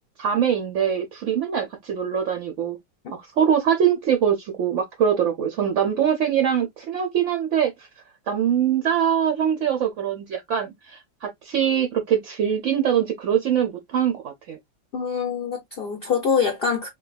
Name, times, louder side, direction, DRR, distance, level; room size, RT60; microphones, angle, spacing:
voice 1, 0.2-2.8 3.1-7.9 8.3-14.6, right 8 dB, 65° right, 0.8 m, -23 dB
voice 2, 14.9-16.9, left 6 dB, 60° left, 0.6 m, -24 dB
3.8 x 2.8 x 2.2 m
omnidirectional pair, 1.8 m